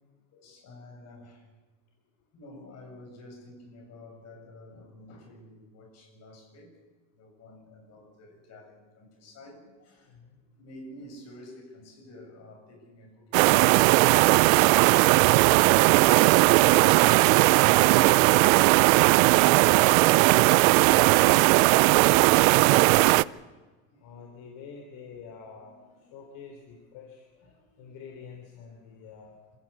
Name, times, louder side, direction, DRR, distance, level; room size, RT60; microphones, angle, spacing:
voice 1, 0.3-1.5 2.3-6.7 7.1-10.1 10.6-14.0 14.3-15.1 19.0-19.4 20.8-21.8 23.0-23.4 23.9-24.0 25.6-26.1 27.4-27.9, left 1 dB, 40° left, 7.0 m, -50 dB
voice 2, 10.1-10.4 17.9-21.2 21.8-23.2 24.0-25.8 26.1-27.2 27.8-29.4, left 6 dB, 55° left, 3.6 m, -47 dB
sound 1, 13.3-23.2, right 21 dB, 80° right, 0.6 m, -18 dB
26.5 x 16.0 x 8.5 m
cardioid pair, 160°, 40 cm